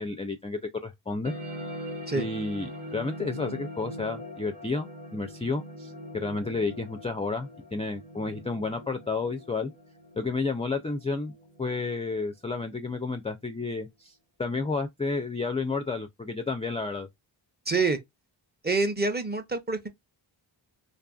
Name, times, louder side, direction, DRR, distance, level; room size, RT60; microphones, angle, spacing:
voice 1, 0.0-1.3 2.1-9.7 10.1-11.3 11.6-17.1, left 3 dB, 15° left, 0.3 m, -31 dB
sound 1, 1.2-12.2, equal, 75° right, 0.9 m, -42 dB
voice 2, 17.7-18.0 18.6-19.9, right 3 dB, 20° right, 0.6 m, -26 dB
2.6 x 2.5 x 2.3 m
cardioid pair, 40°, 50 cm